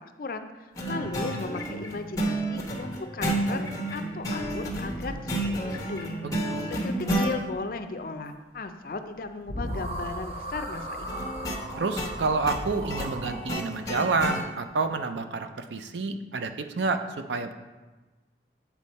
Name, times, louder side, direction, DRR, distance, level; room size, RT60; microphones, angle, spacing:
voice 1, 0.0-6.1 6.8-11.4, left 3 dB, 50° left, 8 dB, 0.5 m, -36 dB
sound 1, 0.8-7.3 11.1-14.4, right 1 dB, 20° left, 1.0 m, -31 dB
sound 2, 4.4-6.0 9.1-9.2 9.5-13.5, equal, 35° right, 0.9 m, -37 dB
voice 2, 6.2-6.8 11.8-17.5, right 4 dB, 85° right, 8 dB, 0.5 m, -29 dB
8.2 x 4.3 x 4.2 m, 1.2 s
head